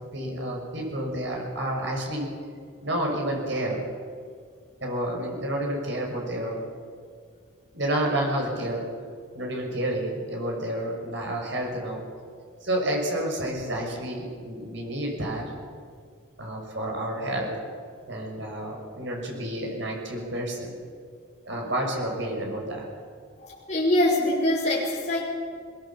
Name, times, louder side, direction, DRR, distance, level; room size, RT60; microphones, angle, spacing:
voice 1, 0.1-2.3 2.8-3.9 4.8-6.6 7.7-8.8 9.3-12.0 12.6-15.5 16.4-17.5 18.1-20.7 21.4-22.9, right 1 dB, 65° right, 0 dB, 6.2 m, -30 dB
voice 2, 23.4-25.2, left 1 dB, 35° left, -7 dB, 5.0 m, -24 dB
22.0 x 20.0 x 7.3 m, 2.1 s
head